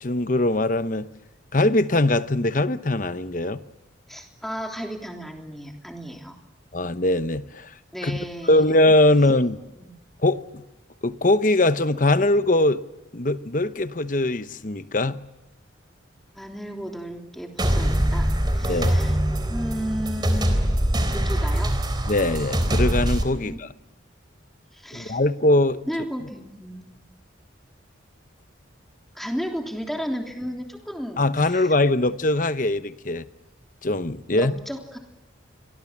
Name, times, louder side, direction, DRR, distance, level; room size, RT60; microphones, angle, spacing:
voice 1, 0.0-1.1 1.5-3.6 6.7-7.7 8.0-8.2 8.4-9.6 10.2-10.6 11.0-12.8 13.1-15.2 18.6-19.0 22.1-23.7 24.9-25.8 31.2-33.2 33.8-34.5, left 2 dB, 40° left, 0.9 m, -21 dB
voice 2, 4.1-6.4 7.9-8.6 9.8-9.9 16.3-19.2 19.5-20.6 21.1-21.7 23.4-23.6 24.7-25.2 25.9-27.0 29.2-31.7 34.3-35.0, equal, ahead, 3.3 m, -33 dB
sound 1, 17.6-23.2, equal, 20° right, 3.5 m, -23 dB
29.5 x 24.0 x 7.4 m
head